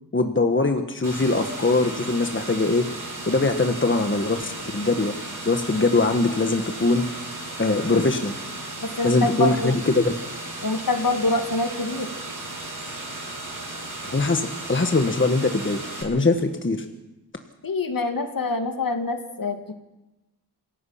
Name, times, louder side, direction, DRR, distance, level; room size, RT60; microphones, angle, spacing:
voice 1, 0.1-2.9 3.3-5.1 5.4-7.0 7.6-8.3 9.0-10.1 14.1-16.8, left 3 dB, 30° left, 6 dB, 1.4 m, -22 dB
sound 1, 1.0-16.0, right 2 dB, 50° right, 7.7 m, -35 dB
voice 2, 8.8-9.8 10.6-12.1 17.6-19.7, left 2 dB, 55° left, 6 dB, 2.2 m, -25 dB
27.0 x 17.0 x 5.8 m, 1.0 s
wide cardioid pair, 85°, 40 cm